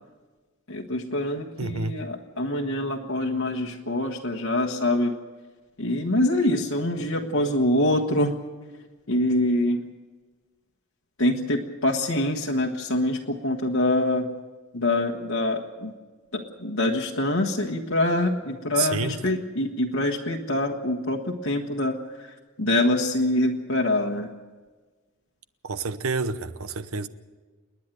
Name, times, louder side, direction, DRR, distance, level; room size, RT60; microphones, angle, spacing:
voice 1, 0.7-5.1 5.8-8.4 9.1-9.8 11.2-14.3 14.7-15.9 16.3-24.3, left 1 dB, 75° left, 1.4 m, -25 dB
voice 2, 1.6-2.0 18.8-19.1 25.6-27.1, right 4 dB, 75° right, 1.0 m, -28 dB
28.5 x 10.5 x 9.2 m
head